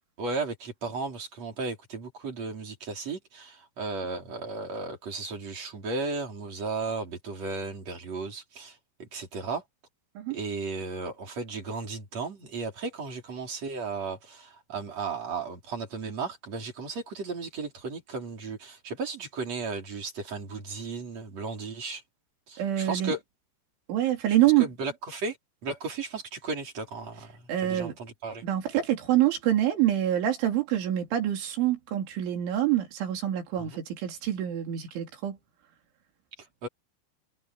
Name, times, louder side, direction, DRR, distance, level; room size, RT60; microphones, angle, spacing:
voice 1, 0.2-9.6 10.3-22.0 22.5-23.2 24.4-25.4 25.6-28.4 33.7-33.8 36.6-36.7, right 4 dB, 35° right, 5.8 m, -35 dB
voice 2, 22.6-23.1 23.9-24.7 27.5-28.0 28.4-35.4, right 12 dB, 85° right, 5.8 m, -26 dB
omnidirectional pair, 5.3 m